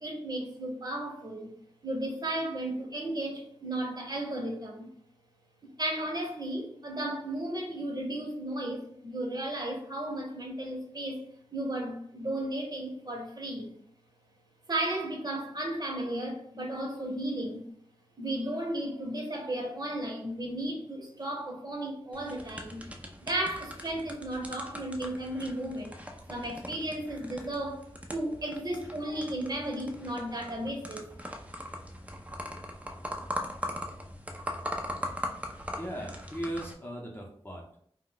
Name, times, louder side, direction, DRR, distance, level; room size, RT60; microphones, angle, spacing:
voice 1, 0.0-1.5 1.8-4.9 5.8-11.2 11.5-13.7 14.7-17.7 18.2-22.8 23.2-26.0 26.3-27.8 28.1-31.1, right 1 dB, 40° right, 0 dB, 0.8 m, -34 dB
sound 1, 22.1-36.7, equal, 15° right, 0.4 m, -40 dB
voice 2, 35.8-37.8, equal, 20° left, -1 dB, 0.7 m, -38 dB
2.3 x 2.1 x 3.8 m, 0.63 s
wide cardioid pair, 55°, 11 cm